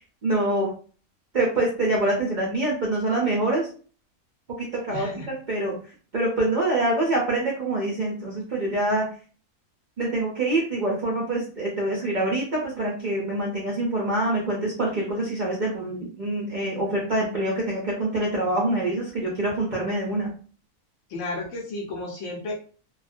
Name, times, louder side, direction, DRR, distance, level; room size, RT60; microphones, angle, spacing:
voice 1, 0.2-0.7 1.3-3.7 4.9-5.8 6.1-9.0 10.0-20.3, right 2 dB, 60° right, -3 dB, 0.4 m, -25 dB
voice 2, 4.9-5.3 21.1-22.5, left 2 dB, 65° left, 0 dB, 0.9 m, -32 dB
2.4 x 2.1 x 2.5 m, 0.40 s
omnidirectional pair, 1.6 m